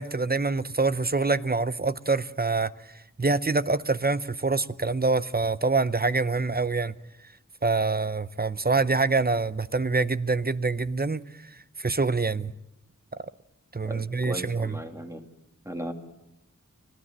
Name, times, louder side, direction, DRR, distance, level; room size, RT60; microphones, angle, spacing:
voice 1, 0.0-2.7 3.2-6.9 7.6-11.2 11.8-12.5 13.7-14.8, right 3 dB, 30° right, 0.7 m, -25 dB
voice 2, 13.8-15.2 15.6-15.9, equal, 10° right, 2.5 m, -36 dB
25.5 x 16.5 x 7.4 m
wide cardioid pair, 50°, 32 cm